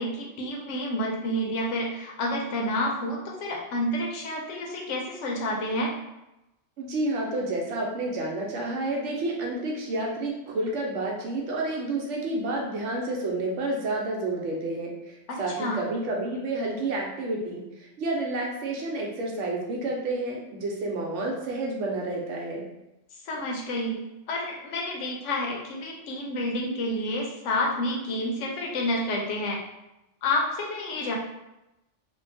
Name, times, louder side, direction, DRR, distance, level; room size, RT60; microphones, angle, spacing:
voice 1, 0.0-5.9 15.3-15.8 23.2-29.6 30.2-31.1, left 1 dB, 80° left, -1 dB, 0.9 m, -29 dB
voice 2, 6.8-22.6, right 2 dB, 80° right, -1 dB, 1.0 m, -30 dB
2.7 x 2.2 x 2.6 m, 0.94 s
omnidirectional pair, 1.2 m